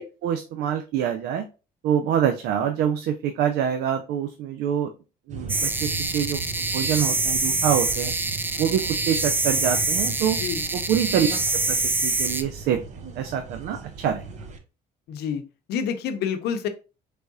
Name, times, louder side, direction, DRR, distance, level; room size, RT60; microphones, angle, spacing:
voice 1, 0.0-1.4 1.8-4.9 5.3-6.4 6.7-8.1 8.6-10.4 10.7-11.3 11.7-12.8 13.2-14.2, right 9 dB, 75° right, 7 dB, 0.5 m, -25 dB
sound 1, 5.3-14.6, right 3 dB, 45° right, 0.8 m, -37 dB
sound 2, 5.5-12.4, right 3 dB, 10° right, 0.4 m, -25 dB
voice 2, 15.1-15.4 15.7-16.7, left 7 dB, 75° left, 8 dB, 0.7 m, -27 dB
4.6 x 3.4 x 2.6 m, 0.31 s
cardioid pair, 110°, 17 cm